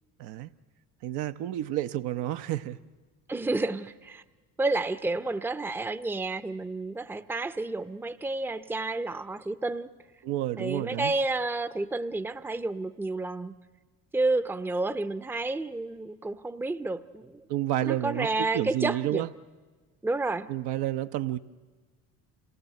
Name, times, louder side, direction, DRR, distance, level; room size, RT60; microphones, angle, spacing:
voice 1, 0.2-0.5 1.0-2.8 10.2-11.1 17.5-19.3 20.5-21.4, right 13 dB, 65° right, 0.8 m, -30 dB
voice 2, 3.3-4.2 4.6-9.9 10.6-13.5 14.1-17.5 17.8-19.2 20.0-20.5, right 2 dB, 5° right, 0.7 m, -30 dB
26.5 x 17.5 x 7.7 m
hypercardioid pair, 70°, 43 cm